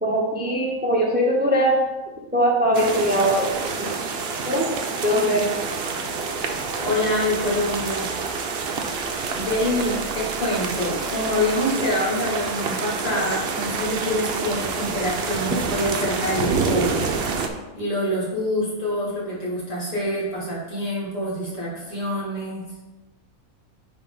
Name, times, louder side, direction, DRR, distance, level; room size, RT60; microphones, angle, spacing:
voice 1, 0.0-1.8 2.3-3.9 4.4-4.7 5.0-5.5, equal, 10° right, -1 dB, 0.7 m, -21 dB
sound 1, 2.7-17.5, right 4 dB, 55° right, 0.8 m, -27 dB
voice 2, 6.8-8.1 9.3-17.4 17.7-22.7, left 1 dB, 65° left, -7 dB, 3.0 m, -26 dB
10.0 x 3.4 x 3.9 m, 1.1 s
omnidirectional pair, 1.4 m